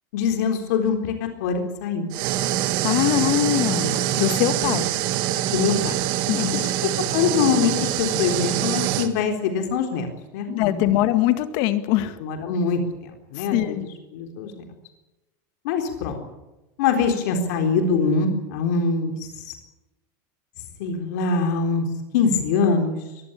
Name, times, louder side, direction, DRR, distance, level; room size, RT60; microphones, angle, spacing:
voice 1, 0.1-2.1 5.5-5.9 6.3-6.4 7.1-10.1 10.3-10.9 12.2-12.8 13.3-13.8 14.1-14.5 15.6-16.2 16.8-19.5 20.8-21.9 22.1-23.0, left 5 dB, 65° left, 4 dB, 3.9 m, -23 dB
sound 1, 2.1-9.1, right 12 dB, 45° right, 1.8 m, -24 dB
voice 2, 2.8-4.9 6.3-6.7 10.5-12.2 13.4-13.9, left 14 dB, 50° left, 10 dB, 1.9 m, -22 dB
22.5 x 15.5 x 10.0 m, 1.0 s
supercardioid pair, 165°, 10 cm